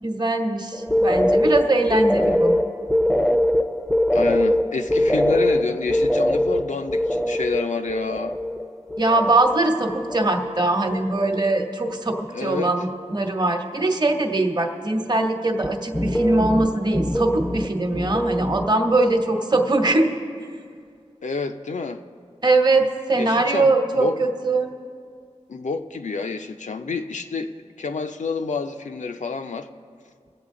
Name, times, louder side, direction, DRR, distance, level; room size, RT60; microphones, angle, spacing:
voice 1, 0.0-2.6 9.0-20.2 22.4-24.7, right 2 dB, 35° right, 4 dB, 1.1 m, -21 dB
sound 1, 0.7-9.7 9.9-10.6 10.9-11.6 11.9-12.4 15.6-18.8, left 1 dB, 5° left, 0.6 m, -23 dB
voice 2, 4.1-8.4 12.3-12.7 21.2-22.0 23.2-24.2 25.5-27.5 27.8-29.7, left 4 dB, 75° left, 6 dB, 0.6 m, -28 dB
22.5 x 8.1 x 3.7 m, 2.1 s
wide cardioid pair, 60°, 12 cm